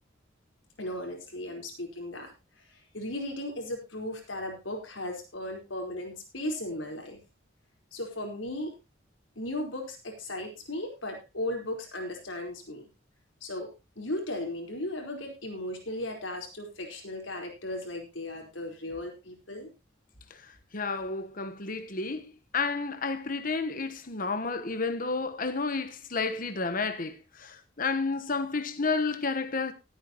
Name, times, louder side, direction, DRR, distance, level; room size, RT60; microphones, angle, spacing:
voice 1, 0.8-2.3 2.6-7.2 7.9-8.7 9.4-12.9 13.4-19.7, left 1 dB, 85° left, 4.6 m, -36 dB
voice 2, 20.7-29.7, left 4 dB, 45° left, 1.2 m, -31 dB
19.5 x 9.1 x 3.0 m
head